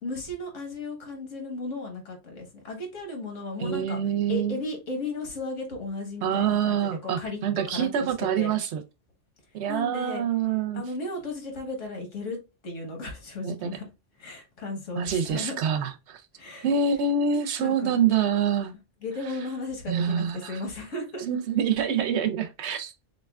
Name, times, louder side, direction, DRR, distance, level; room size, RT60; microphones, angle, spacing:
voice 1, 0.0-4.0 4.3-7.4 7.7-7.9 8.2-8.5 9.7-10.2 10.7-12.4 12.6-13.8 14.2-15.5 16.4-16.7 17.6-18.0 19.0-21.2, left 2 dB, 85° left, 1.6 m, -35 dB
voice 2, 3.6-4.6 6.2-8.8 9.5-10.8 13.4-13.8 14.9-16.2 16.6-18.7 19.9-20.6 21.3-22.9, right 7 dB, 70° right, 0.9 m, -26 dB
6.3 x 2.2 x 2.3 m
omnidirectional pair, 1.2 m